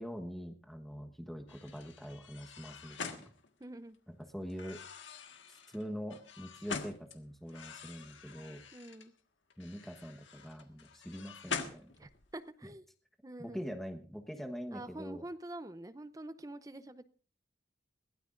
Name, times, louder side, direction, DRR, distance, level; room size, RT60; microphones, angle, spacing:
voice 1, 0.0-3.3 4.3-4.8 5.5-8.6 9.6-11.9 13.4-15.2, equal, ahead, 3 dB, 1.2 m, -44 dB
sound 1, 1.5-4.0 4.5-7.2 7.5-9.1 9.5-12.4, left 5 dB, 85° left, 1.6 m, -45 dB
voice 2, 3.6-4.0 8.7-9.1 12.0-12.9 13.2-13.6 14.7-17.1, right 1 dB, 20° right, 12 dB, 0.6 m, -46 dB
21.5 x 16.0 x 2.6 m, 0.39 s
head